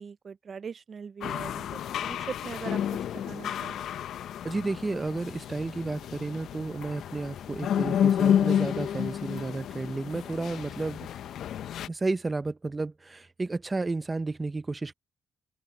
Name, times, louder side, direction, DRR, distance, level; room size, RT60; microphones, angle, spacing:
voice 1, 0.0-3.8, right 6 dB, 45° right, 0.6 m, -41 dB
sound 1, 1.2-11.9, left 9 dB, 70° left, 0.7 m, -30 dB
voice 2, 4.4-11.1 11.9-14.9, right 3 dB, 20° right, 1.0 m, -32 dB
cardioid pair, 90°, 0 cm